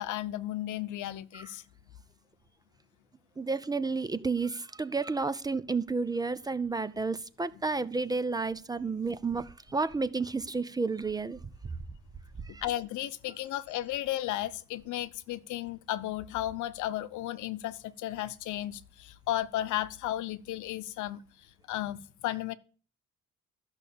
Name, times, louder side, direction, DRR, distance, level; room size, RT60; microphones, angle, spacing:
voice 1, 0.0-1.6 12.5-22.5, left 14 dB, 85° left, 0.9 m, -34 dB
voice 2, 3.4-11.4 12.5-12.6, right 4 dB, 15° right, 0.5 m, -31 dB
13.0 x 6.5 x 8.5 m
cardioid pair, 165°, 29 cm